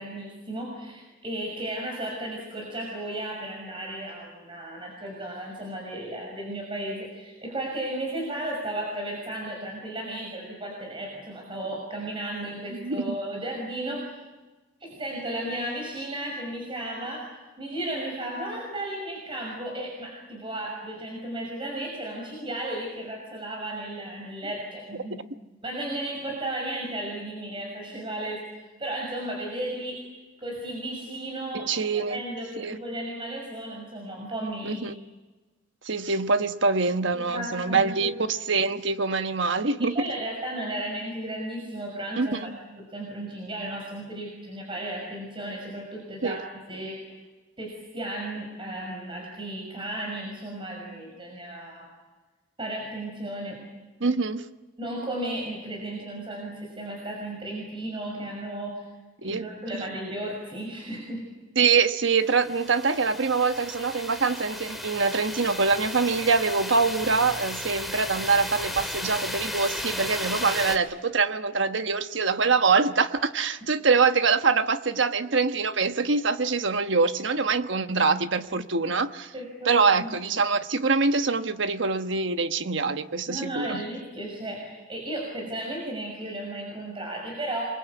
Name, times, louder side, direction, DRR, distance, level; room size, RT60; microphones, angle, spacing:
voice 1, 0.0-14.1 14.8-17.3 17.6-25.2 25.6-28.4 28.8-30.0 30.4-34.8 37.1-38.1 39.8-42.5 42.8-47.1 47.6-51.9 52.6-53.6 54.8-58.9 59.2-61.2 79.3-79.7 80.0-80.2 83.3-87.6, right 1 dB, 25° right, 6.1 m, -34 dB
voice 2, 12.7-13.2 31.5-32.2 32.6-32.8 34.6-34.9 35.8-40.0 42.2-42.5 46.2-46.4 54.0-54.5 59.2-59.5 59.7-59.8 61.5-79.3 79.6-83.8, right 4 dB, 65° right, 1.2 m, -24 dB
sound 1, 62.2-70.8, left 1 dB, ahead, 2.3 m, -35 dB
27.5 x 23.5 x 8.4 m
head